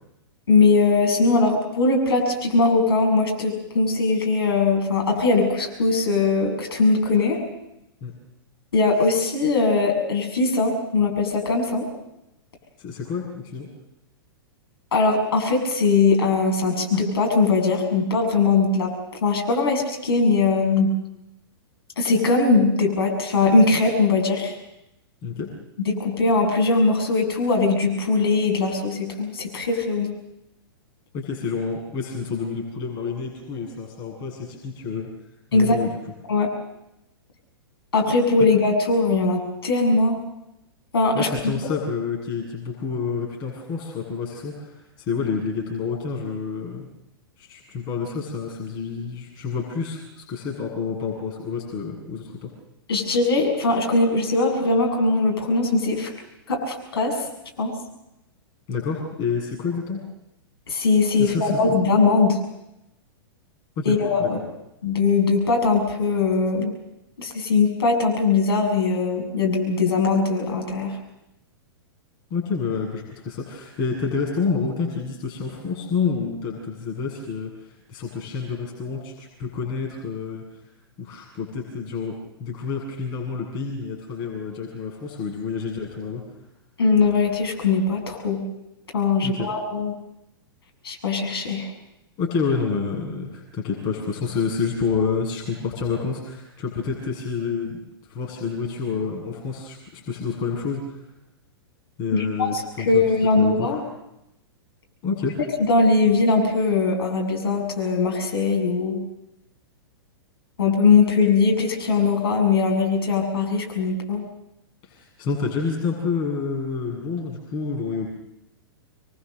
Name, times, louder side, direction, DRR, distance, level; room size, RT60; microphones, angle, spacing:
voice 1, 0.5-7.4 8.7-11.9 14.9-18.9 19.2-20.9 22.0-24.5 25.8-30.1 35.5-35.8 36.3-36.5 37.9-40.2 40.9-41.3 41.7-41.8 52.9-56.1 56.5-57.2 57.6-57.7 60.7-62.4 63.9-64.4 64.8-66.7 67.2-70.9 86.8-88.5 88.9-89.9 90.8-91.7 102.1-103.8 105.7-109.0 110.6-114.2, left 3 dB, 70° left, 1 dB, 7.0 m, -20 dB
voice 2, 12.8-13.7 25.2-25.5 31.1-35.1 35.5-35.9 41.1-46.9 47.4-52.5 58.7-60.0 61.2-61.7 63.8-64.3 72.3-80.4 81.0-86.3 89.2-89.5 92.2-97.8 98.1-101.0 102.0-103.0 103.4-103.8 105.0-105.4 114.8-118.1, left 5 dB, 35° left, -2 dB, 7.7 m, -28 dB
27.5 x 23.0 x 6.8 m, 0.88 s
figure-of-eight pair, 105°, 13 cm